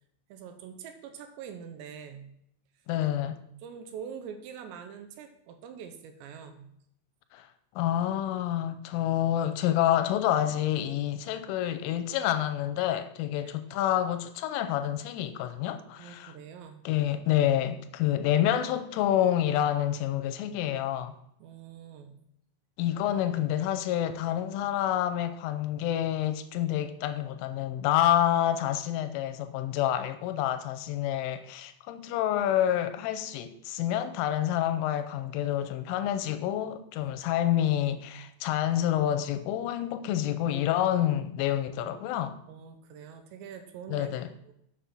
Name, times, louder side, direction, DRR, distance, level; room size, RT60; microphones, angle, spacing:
voice 1, 0.3-2.3 3.6-6.7 13.4-13.7 16.0-16.8 21.4-22.1 37.0-37.1 42.5-44.1 44.4-44.5, right 7 dB, 80° right, 2.7 m, -44 dB
voice 2, 2.9-3.4 7.3-7.5 7.8-16.3 16.9-21.2 22.8-42.4 43.9-44.3, left 11 dB, 90° left, 3.2 m, -28 dB
7.1 x 7.0 x 5.9 m
omnidirectional pair, 5.6 m